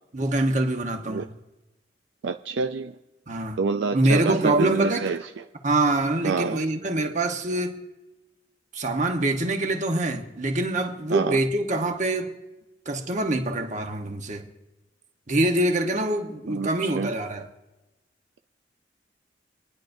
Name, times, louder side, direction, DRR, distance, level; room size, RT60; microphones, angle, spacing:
voice 1, 0.1-1.3 3.3-3.6 3.9-5.1 5.6-7.7 8.7-12.3 12.9-14.5 15.3-17.5, right 2 dB, 40° right, 1.2 m, -25 dB
voice 2, 2.2-2.9 3.6-5.4 6.2-6.6 11.1-11.4 16.5-17.1, right 5 dB, 70° right, 0.4 m, -27 dB
26.0 x 10.5 x 2.7 m
head